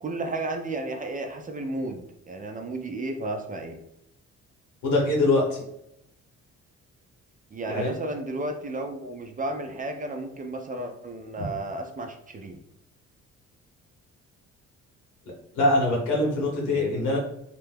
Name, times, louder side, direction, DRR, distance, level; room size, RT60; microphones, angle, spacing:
voice 1, 0.0-3.8 7.5-12.6 16.8-17.0, right 2 dB, 30° right, 5 dB, 0.4 m, -33 dB
voice 2, 4.8-5.6 7.7-7.9 11.4-11.5 15.5-17.2, left 2 dB, 80° left, -2 dB, 1.3 m, -23 dB
2.9 x 2.2 x 3.4 m, 0.78 s
cardioid pair, 90°, 30 cm